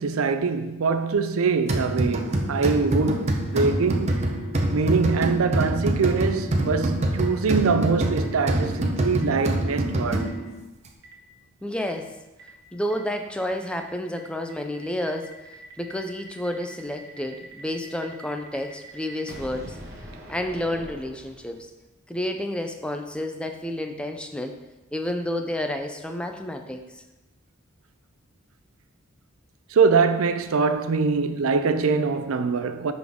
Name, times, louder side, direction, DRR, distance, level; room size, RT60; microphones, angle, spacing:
voice 1, 0.0-4.3 4.7-10.3 29.7-32.9, right 5 dB, 80° right, 0.5 m, -23 dB
sound 1, 1.7-10.6, right 1 dB, 30° right, 0.7 m, -25 dB
Boom, 6.2-6.3 7.2-7.3 8.2-8.3 9.2-9.3 10.2-10.3 11.0-11.1 11.8-11.9 12.4-12.5 12.9-13.0 13.4-13.5 13.8-13.9 14.2-21.7, right 1 dB, 50° right, 1.2 m, -44 dB
voice 2, 11.6-12.1 12.7-15.3 15.8-19.8 20.3-21.7 22.1-24.6 24.9-27.0, left 1 dB, 5° left, 0.4 m, -30 dB
10.5 x 4.0 x 3.6 m
head